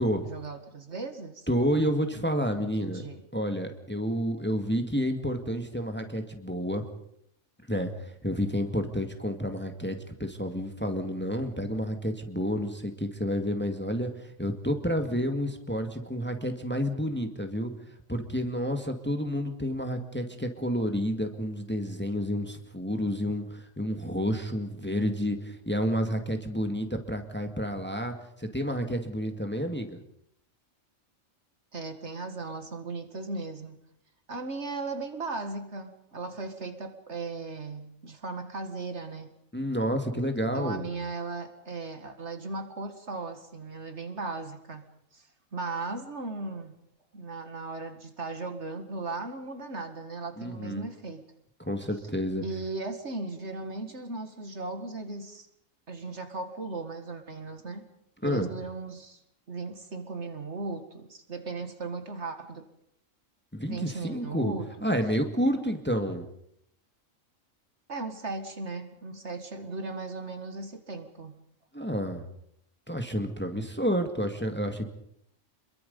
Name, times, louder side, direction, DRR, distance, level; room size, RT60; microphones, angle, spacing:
voice 1, 0.0-1.5 2.7-3.2 31.7-33.8 34.3-39.3 40.5-44.9 45.1-46.8 47.1-51.2 52.4-55.5 55.9-57.9 58.2-59.2 59.5-62.7 63.6-64.9 67.9-71.4, right 3 dB, 55° right, 7 dB, 2.2 m, -37 dB
voice 2, 1.5-3.0 3.3-6.8 7.7-17.7 18.1-30.0 39.5-40.9 50.4-50.8 51.6-52.4 58.2-58.5 63.5-64.5 64.8-66.3 71.7-72.3 72.9-74.9, equal, 10° left, 5 dB, 1.9 m, -30 dB
27.5 x 22.5 x 5.4 m, 0.74 s
omnidirectional pair, 1.4 m